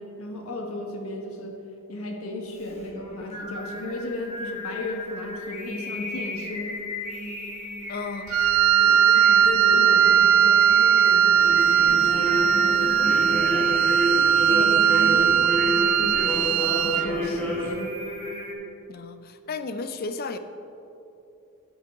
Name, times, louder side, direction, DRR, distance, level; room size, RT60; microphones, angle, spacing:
voice 1, 0.0-1.6 1.9-6.8 8.8-11.5 11.8-13.8 14.5-17.9, left 1 dB, 80° left, 2 dB, 1.3 m, -35 dB
Singing, 2.6-18.5, left 2 dB, 30° left, 1.3 m, -37 dB
voice 2, 7.9-8.3 18.9-20.4, left 4 dB, 45° left, 11 dB, 0.5 m, -33 dB
Wind instrument woodwind instrument, 8.3-17.2, right 8 dB, 70° right, 0.4 m, -19 dB
sound 1, 11.4-17.7, equal, 5° left, 1.2 m, -29 dB
11.5 x 7.5 x 3.6 m, 2.8 s
head